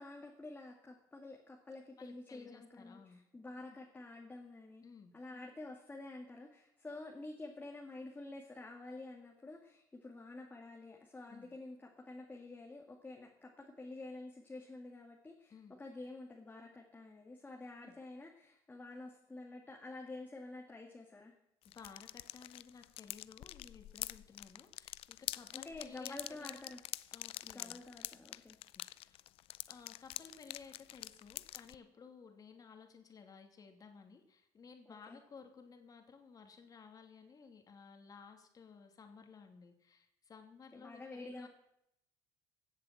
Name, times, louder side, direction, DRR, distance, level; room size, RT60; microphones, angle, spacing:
voice 1, 0.0-4.8 5.1-21.3 25.5-26.8 27.4-28.6 34.9-35.2 40.7-41.5, left 2 dB, 15° left, 0 dB, 2.1 m, -49 dB
voice 2, 2.0-3.2 3.7-3.8 4.8-5.1 11.3-11.5 15.5-15.7 17.8-17.9 21.7-26.6 27.1-27.8 29.0-29.2 29.7-41.5, left 5 dB, 35° left, 5 dB, 2.6 m, -56 dB
sound 1, 21.6-31.7, left 15 dB, 65° left, 0.5 m, -46 dB
16.0 x 7.5 x 7.7 m, 0.79 s
supercardioid pair, 95°, 10 cm